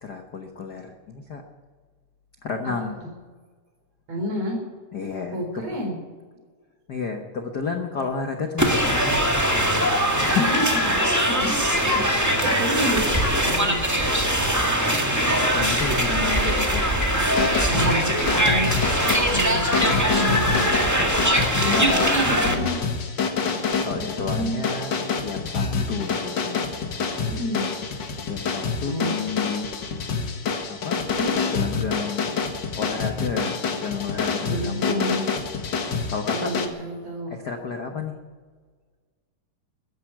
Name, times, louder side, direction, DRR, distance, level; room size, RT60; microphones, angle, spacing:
voice 1, 0.0-1.4 2.4-3.0 4.9-5.8 6.9-9.4 9.8-10.6 15.5-16.8 20.9-22.4 23.8-26.9 28.3-29.7 30.7-31.0 31.3-32.4 32.8-35.4 36.1-36.5 37.3-38.2, left 5 dB, 90° left, 4 dB, 0.8 m, -31 dB
voice 2, 2.8-3.1 4.1-4.6 5.3-5.9 10.4-13.1 13.4-13.8 17.6-20.7 21.6-22.8 23.8-24.6 27.2-27.7 28.8-29.1 31.2-31.3 34.4-35.2 36.3-37.3, equal, 50° right, 1 dB, 5.6 m, -29 dB
sound 1, 8.6-22.5, equal, 10° right, 0.9 m, -22 dB
sound 2, 17.2-36.7, left 5 dB, 45° left, 1.6 m, -27 dB
14.0 x 11.0 x 9.3 m, 1.5 s
omnidirectional pair, 3.7 m